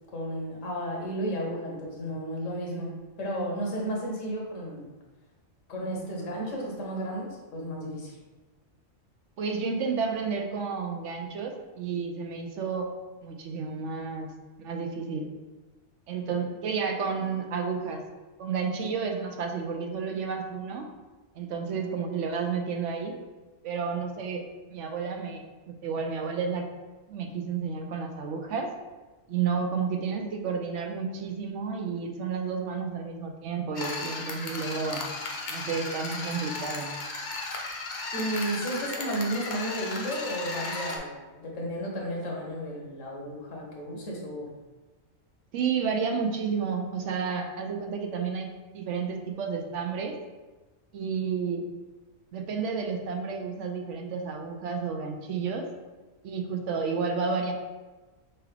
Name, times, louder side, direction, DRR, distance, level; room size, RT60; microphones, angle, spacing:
voice 1, 0.1-4.9 5.7-8.2 38.1-44.5, right 1 dB, 75° left, -1 dB, 1.3 m, -33 dB
voice 2, 9.4-12.9 13.2-14.3 14.6-15.3 16.1-18.0 18.4-20.9 21.4-23.1 23.6-24.4 24.7-26.6 27.1-28.7 29.3-35.0 35.5-36.9 45.5-48.5 48.7-50.1 50.9-51.6 52.3-55.6 56.2-57.5, right 5 dB, 70° right, 3 dB, 0.9 m, -31 dB
sound 1, 33.8-41.0, left 3 dB, 50° left, 0.6 m, -35 dB
5.7 x 2.5 x 3.3 m, 1.2 s
omnidirectional pair, 1.3 m